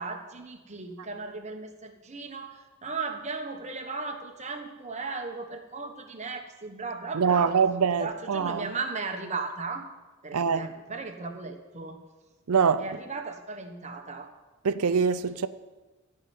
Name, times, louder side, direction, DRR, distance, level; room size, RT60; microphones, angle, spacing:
voice 1, 0.0-7.6 7.9-9.8 10.2-12.0 12.8-14.3, right 4 dB, 30° right, 1.2 m, -36 dB
voice 2, 7.1-8.7 10.3-10.7 12.5-12.8 14.6-15.5, right 6 dB, 85° right, 0.6 m, -24 dB
14.0 x 5.6 x 9.5 m
head